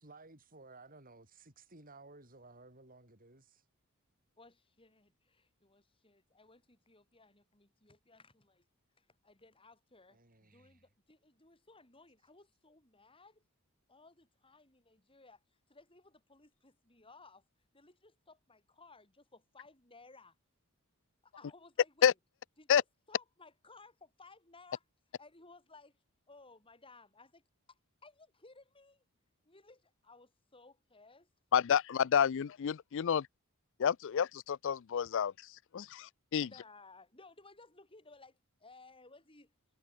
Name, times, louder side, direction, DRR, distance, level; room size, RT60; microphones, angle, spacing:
voice 1, 0.0-3.6 10.1-10.8, right 3 dB, 40° right, 6.5 m, -57 dB
voice 2, 4.4-8.7 9.0-13.4 13.9-17.4 17.7-20.4 21.2-22.1 22.6-24.8 25.2-27.4 27.7-29.1 29.4-31.3 36.4-39.5, left 3 dB, 25° left, 6.8 m, -60 dB
voice 3, 31.5-33.3 33.8-35.3 35.7-36.5, left 8 dB, 60° left, 0.4 m, -29 dB
head